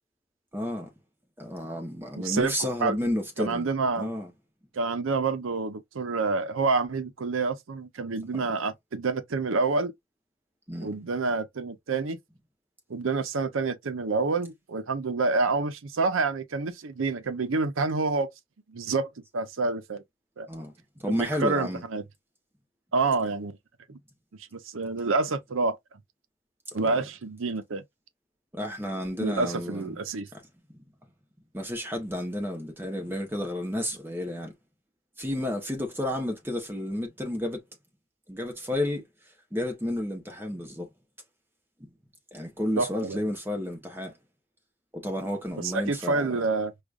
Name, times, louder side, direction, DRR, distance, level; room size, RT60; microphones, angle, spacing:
voice 1, 0.5-0.9 1.4-3.7 3.9-4.3 8.3-8.4 10.7-10.9 20.5-21.8 26.8-27.0 28.5-30.0 31.5-34.5 35.2-37.6 38.3-39.0 39.5-40.9 41.8-41.9 42.3-44.1 44.9-46.3, left 1 dB, 10° right, 0.9 m, -31 dB
voice 2, 2.1-2.5 2.8-3.0 3.4-4.1 4.7-9.9 10.8-12.2 12.9-18.3 18.7-20.0 20.4-20.5 21.1-22.0 22.9-23.6 23.9-24.0 24.5-25.8 26.7-27.8 29.2-30.3 42.8-43.2 45.6-46.7, right 3 dB, 80° right, 0.6 m, -28 dB
4.8 x 2.3 x 2.4 m
head